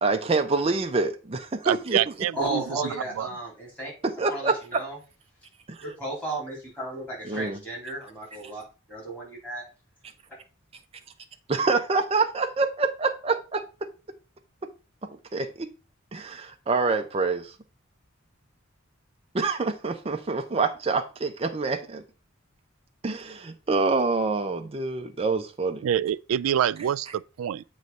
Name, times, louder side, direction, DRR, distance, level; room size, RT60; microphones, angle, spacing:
voice 1, 0.0-2.0 4.0-4.8 5.7-5.8 7.3-7.6 11.5-13.9 15.3-15.7 16.1-17.5 19.3-22.0 23.0-25.8, right 3 dB, 30° right, 0.5 m, -26 dB
voice 2, 1.6-3.3 25.8-27.6, right 10 dB, 85° right, 0.3 m, -26 dB
voice 3, 2.3-3.9 4.3-5.0 5.8-9.6, right 2 dB, 5° left, 3.5 m, -34 dB
7.8 x 3.1 x 5.4 m
head